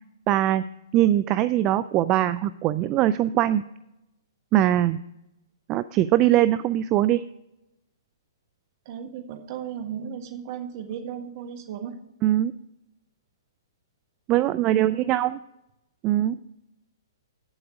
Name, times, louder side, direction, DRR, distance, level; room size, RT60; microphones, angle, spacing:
voice 1, 0.3-0.7 0.9-3.6 4.5-5.0 5.7-7.2 12.2-12.5 14.3-15.4 16.0-16.4, right 13 dB, 30° right, 15 dB, 0.3 m, -21 dB
voice 2, 8.8-11.9 14.5-15.2, right 8 dB, 45° right, 6 dB, 1.4 m, -36 dB
8.9 x 7.9 x 5.0 m, 0.88 s
hypercardioid pair, 125°, 2 cm